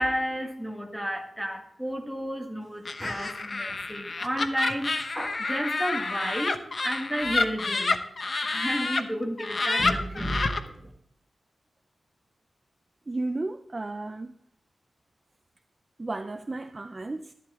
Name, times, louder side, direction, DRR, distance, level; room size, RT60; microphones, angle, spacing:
voice 1, 0.0-8.0 8.4-10.9, equal, 5° right, 1.8 m, -32 dB
Laughter, 2.8-9.0 9.4-10.6, left 3 dB, 40° left, 0.9 m, -29 dB
voice 2, 13.1-14.3 16.0-17.3, right 2 dB, 30° right, 0.5 m, -33 dB
13.0 x 11.0 x 3.7 m
wide cardioid pair, 125°, 0 cm